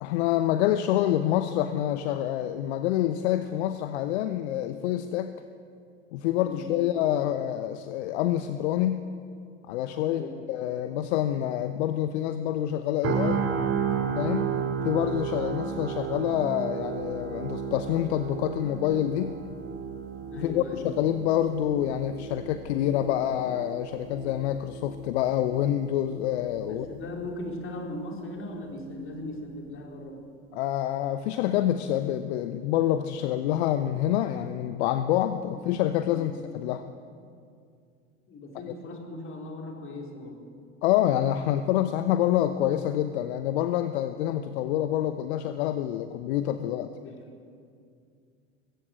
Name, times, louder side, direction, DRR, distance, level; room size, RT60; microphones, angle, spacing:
voice 1, 0.0-5.3 6.1-9.0 9.7-10.2 10.5-13.5 14.2-14.5 14.8-19.4 20.3-26.9 30.5-36.8 40.8-46.9, left 12 dB, 60° left, 11 dB, 0.9 m, -27 dB
voice 2, 6.4-6.7 10.0-10.4 20.3-20.9 26.6-30.2 38.3-40.4 47.0-47.2, left 1 dB, 35° left, 1 dB, 4.3 m, -38 dB
sound 1, 13.0-27.0 27.4-27.6, right 7 dB, 40° right, 3.2 m, -33 dB
20.5 x 16.0 x 8.1 m, 2.4 s
figure-of-eight pair, 75°, 36 cm